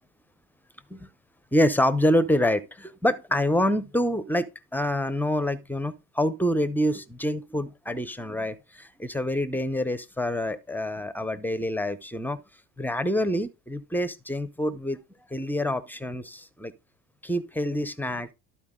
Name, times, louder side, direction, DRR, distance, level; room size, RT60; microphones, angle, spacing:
voice 1, 1.5-12.4 12.8-15.0 15.3-16.7 17.2-18.3, equal, 5° left, 0.6 m, -26 dB
12.0 x 4.5 x 3.6 m
supercardioid pair, 90°, 46 cm